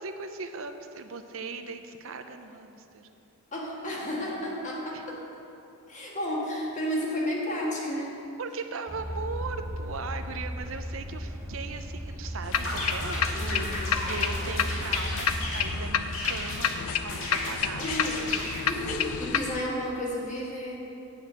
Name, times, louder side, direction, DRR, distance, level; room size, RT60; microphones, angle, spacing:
voice 1, 0.0-3.1 4.9-5.0 8.4-13.6 13.8-17.9, right 4 dB, 70° right, 8 dB, 0.6 m, -39 dB
voice 2, 3.5-5.2 5.9-8.2 13.3-13.8 14.4-14.7 17.7-18.4 18.6-20.8, equal, 35° left, -3 dB, 1.7 m, -32 dB
sound 1, 8.9-15.9, equal, 15° right, 0.7 m, -35 dB
sound 2, 12.4-19.6, left 8 dB, 90° left, 0.4 m, -30 dB
sound 3, 12.5-15.7 16.1-16.7 17.1-18.7, left 1 dB, 70° left, 2.0 m, -35 dB
8.5 x 6.0 x 7.3 m, 2.9 s
head